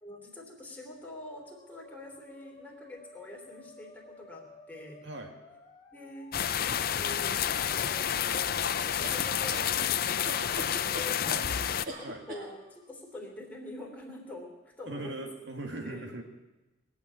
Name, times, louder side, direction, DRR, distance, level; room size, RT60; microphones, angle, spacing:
voice 1, 0.0-5.0 5.9-8.6 8.8-11.8 12.3-15.3 15.8-16.1, left 1 dB, 10° left, -1 dB, 2.9 m, -46 dB
Musical instrument, 1.3-13.0, left 2 dB, 30° left, 3.0 m, -55 dB
sound 1, 6.3-11.9, left 9 dB, 50° left, 0.5 m, -29 dB
sound 2, 9.0-9.7 10.2-11.1 11.9-12.5, right 1 dB, 45° right, 2.9 m, -40 dB
voice 2, 14.9-16.2, right 2 dB, 60° right, 4 dB, 2.1 m, -39 dB
20.5 x 7.3 x 9.3 m, 1.1 s
head